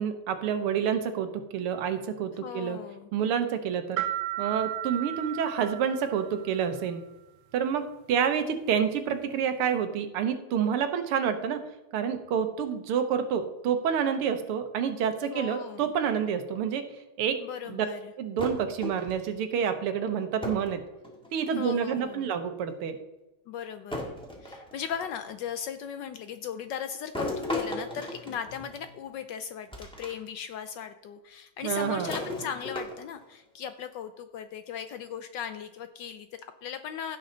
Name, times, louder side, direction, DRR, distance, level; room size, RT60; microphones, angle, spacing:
voice 1, 0.0-2.8 3.1-4.0 4.4-7.0 7.5-11.6 11.9-16.8 17.2-17.4 17.7-17.9 18.2-20.8 21.3-23.0 31.6-32.1, right 7 dB, 90° right, 8 dB, 1.9 m, -28 dB
voice 2, 2.4-3.1 15.3-15.9 17.4-18.1 21.5-22.3 23.5-24.1 24.4-37.2, left 8 dB, 75° left, 9 dB, 1.1 m, -37 dB
sound 1, 4.0-6.6, right 13 dB, 70° right, 1.2 m, -34 dB
sound 2, 18.4-19.3 20.4-20.7 21.0-21.6 22.7-22.8 23.9-25.2 27.1-29.0 29.7-30.1 30.5-30.6 31.8-33.2, left 1 dB, 5° left, 1.4 m, -36 dB
15.5 x 6.4 x 3.9 m, 0.97 s
omnidirectional pair, 2.4 m